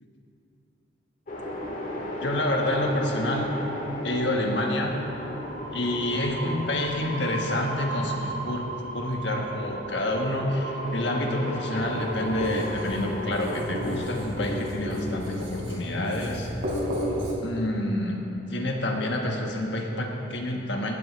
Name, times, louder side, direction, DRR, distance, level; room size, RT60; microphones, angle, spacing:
sound 1, 1.3-15.2, equal, 40° left, 1.8 m, -35 dB
voice 1, 2.2-3.5 4.0-4.9 5.7-8.7 8.9-16.5 17.4-18.2 18.5-21.0, left 1 dB, 60° left, 1 dB, 1.5 m, -28 dB
Writing, 11.7-17.3, equal, 80° right, 3.3 m, -32 dB
18.0 x 13.0 x 3.3 m, 3.0 s
head